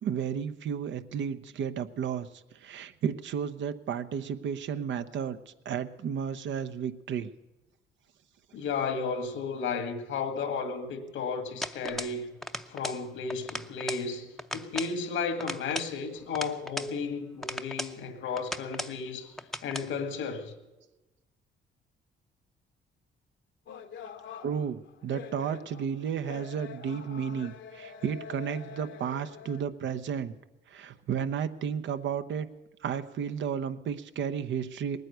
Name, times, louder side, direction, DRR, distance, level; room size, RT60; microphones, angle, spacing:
voice 1, 0.0-2.3 2.6-7.3 24.4-30.3 30.7-32.5 32.8-35.0, right 7 dB, 70° right, 0.9 m, -33 dB
voice 2, 8.5-12.3 12.7-14.3 14.5-19.3 19.6-20.5, left 5 dB, 85° left, 1.8 m, -33 dB
sound 1, 11.6-12.2 12.4-13.0 13.3-14.1 14.4-15.0 15.4-16.9 17.4-18.0 18.4-19.0 19.4-19.9, left 1 dB, ahead, 0.6 m, -37 dB
sound 2, 23.7-29.6, left 8 dB, 70° left, 1.0 m, -45 dB
19.0 x 9.4 x 8.0 m
cardioid pair, 90°, 20 cm